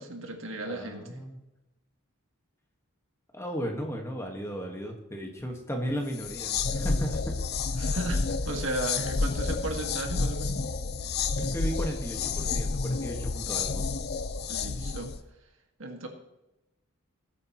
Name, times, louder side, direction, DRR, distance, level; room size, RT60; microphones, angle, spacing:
voice 1, 0.0-1.2 7.8-10.7 14.5-15.1 15.8-16.1, right 2 dB, 65° right, 3 dB, 1.9 m, -35 dB
voice 2, 0.7-1.4 3.3-7.2 11.4-13.9, equal, 15° left, 2 dB, 1.6 m, -35 dB
sound 1, 6.1-15.2, left 4 dB, 50° left, 0.6 m, -30 dB
20.5 x 8.3 x 3.1 m, 0.92 s
head